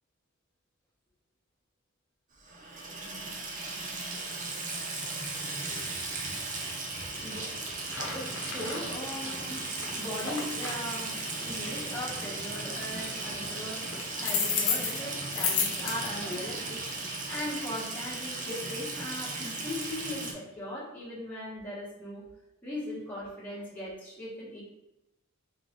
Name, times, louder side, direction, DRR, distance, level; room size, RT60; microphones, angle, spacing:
Water tap faucet / Sink (filling or washing), 2.4-20.3, right 3 dB, 35° right, 0.7 m, -36 dB
voice 1, 7.0-9.6 9.9-22.2 22.6-24.6, left 1 dB, 10° left, -8 dB, 1.3 m, -39 dB
sound 1, 7.9-16.8, left 5 dB, 70° left, 0.9 m, -35 dB
3.7 x 3.3 x 3.6 m, 0.92 s
head